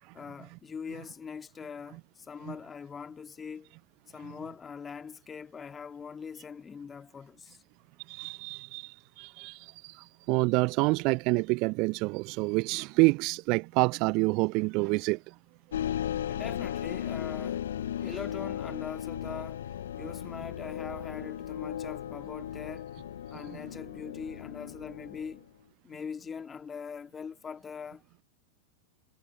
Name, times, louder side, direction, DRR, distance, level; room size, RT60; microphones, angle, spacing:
voice 1, 0.1-3.8 4.1-7.6 16.3-17.7 18.0-22.9 23.3-25.5 25.8-28.0, left 6 dB, 20° left, 1.9 m, -42 dB
voice 2, 8.1-15.3, right 27 dB, 40° right, 0.5 m, -28 dB
sound 1, 15.7-25.4, left 10 dB, 60° left, 1.1 m, -36 dB
figure-of-eight pair, 90°, 0 cm